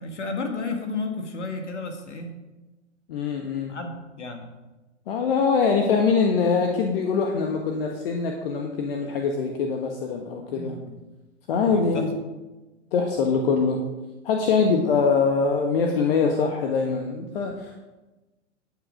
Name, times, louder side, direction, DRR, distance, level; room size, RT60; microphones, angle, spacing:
voice 1, 0.0-2.3 3.4-4.5 10.5-11.0 11.5-12.1, left 3 dB, 70° left, 4 dB, 2.1 m, -33 dB
voice 2, 3.1-3.7 5.1-10.7 11.5-12.1 12.9-13.8 14.2-17.8, left 5 dB, 50° left, 2 dB, 1.5 m, -23 dB
12.5 x 8.5 x 5.1 m, 1.1 s
figure-of-eight pair, 105°, 37 cm